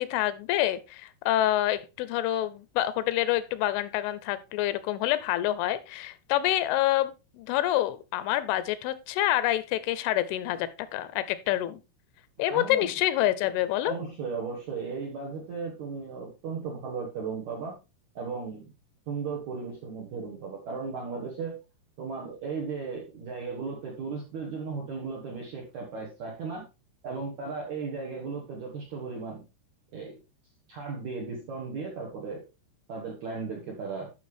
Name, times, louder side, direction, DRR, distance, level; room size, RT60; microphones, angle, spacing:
voice 1, 0.0-7.1 7.4-11.8 12.4-14.0, left 14 dB, 85° left, 15 dB, 3.1 m, -27 dB
voice 2, 12.5-12.9 13.8-17.8 18.2-18.7 19.1-21.6 22.0-26.7 27.0-29.4 29.9-30.2 30.7-32.4 32.9-34.1, right 5 dB, 70° right, -2 dB, 1.7 m, -36 dB
12.0 x 5.8 x 3.2 m, 0.27 s
omnidirectional pair, 5.6 m